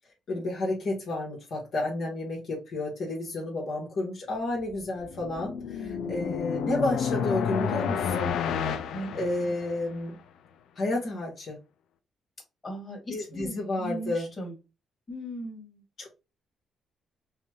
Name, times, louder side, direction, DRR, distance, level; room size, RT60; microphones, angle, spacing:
voice 1, 0.3-8.4 9.1-10.1 10.7-11.6 13.1-14.3 16.0-16.1, left 2 dB, 60° left, 1.7 m, -31 dB
sound 1, 4.8-10.0, left 7 dB, 75° left, 0.5 m, -30 dB
voice 2, 6.0-6.4 8.9-9.1 12.6-14.5 15.1-15.8, right 1 dB, 35° left, 2.2 m, -38 dB
5.6 x 2.4 x 3.0 m
cardioid pair, 90°, 0 cm